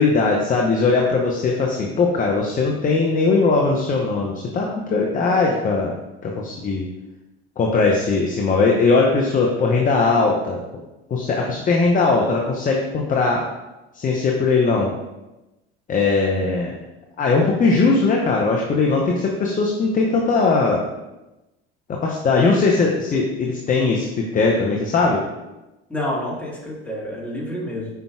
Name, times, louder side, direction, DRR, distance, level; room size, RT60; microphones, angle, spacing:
voice 1, 0.0-5.9 6.2-6.8 7.6-10.6 11.1-13.4 13.9-14.9 15.9-16.7 17.2-20.8 22.0-25.2, left 3 dB, 25° left, -1 dB, 0.7 m, -19 dB
voice 2, 25.9-27.9, left 1 dB, 5° left, -5 dB, 1.6 m, -28 dB
5.2 x 4.5 x 2.3 m, 1.0 s
hypercardioid pair, 70°, 31 cm